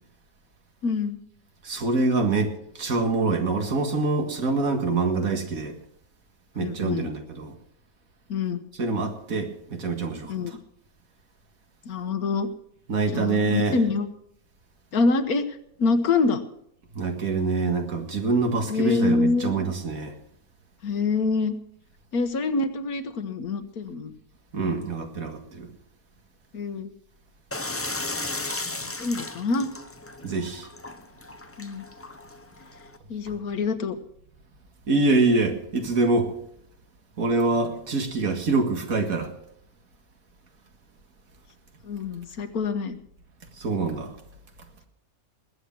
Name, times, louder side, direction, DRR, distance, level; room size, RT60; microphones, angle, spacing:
voice 1, 0.8-1.2 6.6-7.1 8.3-8.6 10.3-10.5 11.8-12.5 13.1-14.1 14.9-16.4 18.7-19.5 20.8-21.5 22.1-24.1 26.5-26.9 28.7-29.7 31.6-31.8 33.1-34.0 41.8-43.0, left 4 dB, 80° left, 1.6 m, -26 dB
voice 2, 1.6-5.7 6.6-7.6 8.8-10.6 12.9-13.8 16.9-20.1 24.5-25.7 30.2-30.7 34.9-36.3 37.2-39.3 43.6-44.1, right 3 dB, 70° right, 2.3 m, -25 dB
sound 1, 27.5-33.0, left 2 dB, 15° left, 0.4 m, -35 dB
20.5 x 8.2 x 6.0 m
omnidirectional pair, 1.5 m